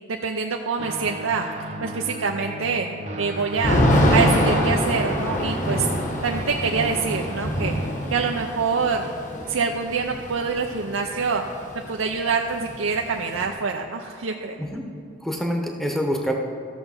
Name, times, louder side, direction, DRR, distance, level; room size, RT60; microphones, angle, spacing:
voice 1, 0.1-1.5 1.8-2.9 3.2-3.8 4.1-5.9 6.2-7.8 8.1-9.1 9.5-11.4 11.9-14.6, right 5 dB, 85° right, 2 dB, 0.6 m, -25 dB
Guitar, 0.8-8.4, right 1 dB, 35° right, 0.8 m, -36 dB
Thunder / Rain, 3.6-11.5 11.8-11.9 12.1-13.5, equal, 40° left, 1.2 m, -24 dB
voice 2, 14.6-14.9 15.2-16.3, equal, ahead, 2 dB, 0.9 m, -26 dB
13.5 x 6.9 x 5.6 m, 2.5 s
head